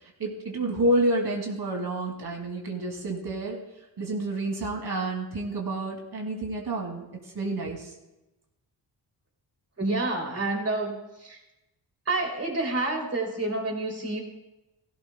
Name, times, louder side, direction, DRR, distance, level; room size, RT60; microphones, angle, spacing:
voice 1, 0.2-3.6 4.0-7.1 7.3-7.9, right 1 dB, 55° right, 0 dB, 2.6 m, -29 dB
voice 2, 9.8-11.4 12.1-14.2, right 2 dB, 30° right, 0 dB, 2.9 m, -28 dB
16.5 x 16.0 x 2.2 m, 0.97 s
wide cardioid pair, 100°, 45 cm